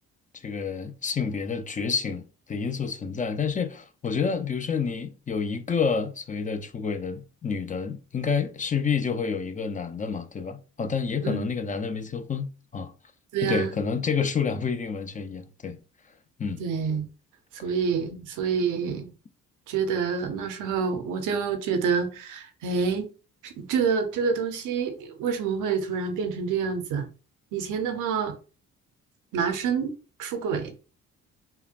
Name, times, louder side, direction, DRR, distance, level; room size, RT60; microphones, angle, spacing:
voice 1, 0.3-12.9 13.4-15.8 16.4-16.6 18.1-18.2 18.8-19.0, left 5 dB, 25° left, 0.5 m, -29 dB
voice 2, 13.3-13.7 16.6-17.1 17.6-19.1 19.7-23.1 23.4-27.1 27.5-28.3 29.3-30.8, right 6 dB, 90° right, 0.9 m, -27 dB
5.5 x 2.2 x 2.5 m
cardioid pair, 90°, 30 cm